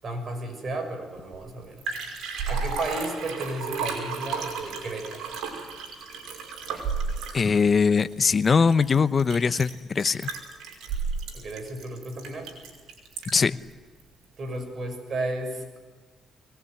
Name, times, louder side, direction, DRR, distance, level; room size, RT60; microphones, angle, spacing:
voice 1, 0.0-1.8 2.5-5.3 11.3-12.5 14.4-15.8, right 2 dB, 45° right, 5 dB, 6.7 m, -33 dB
Liquid, 1.3-1.4 1.6-13.5 14.0-14.1, right 5 dB, 85° right, 5.8 m, -33 dB
voice 2, 7.3-10.3 13.3-13.6, left 5 dB, 40° left, 13 dB, 0.9 m, -21 dB
23.5 x 19.5 x 9.5 m, 1.4 s
cardioid pair, 90°, 0 cm